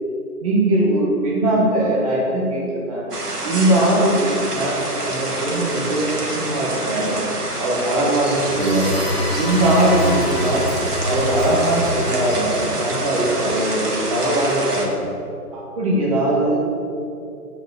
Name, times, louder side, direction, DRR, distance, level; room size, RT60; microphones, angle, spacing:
voice 1, 0.4-3.1 3.4-4.8 5.0-7.2 7.6-8.9 9.4-10.6 11.0-14.9 15.5-16.7, right 1 dB, 25° right, -5 dB, 1.7 m, -20 dB
sound 1, 3.1-14.9, right 2 dB, 80° right, 1.9 m, -27 dB
sound 2, 8.3-14.0, equal, 40° left, 1.6 m, -27 dB
7.8 x 5.2 x 7.0 m, 2.7 s
figure-of-eight pair, 160°, 46 cm